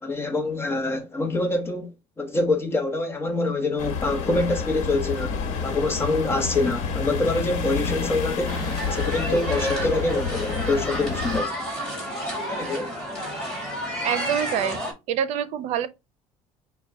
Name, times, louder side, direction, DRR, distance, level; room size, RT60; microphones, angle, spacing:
voice 1, 0.0-1.9 2.2-11.5 12.5-13.0, left 2 dB, 20° left, 1.0 m, -25 dB
sound 1, 3.8-11.4, left 5 dB, 75° left, 1.2 m, -29 dB
sound 2, 8.5-14.9, equal, 5° left, 2.2 m, -31 dB
voice 2, 14.0-14.8 15.1-15.9, right 9 dB, 65° right, 0.6 m, -25 dB
5.3 x 2.2 x 3.4 m
cardioid pair, 115°, 12 cm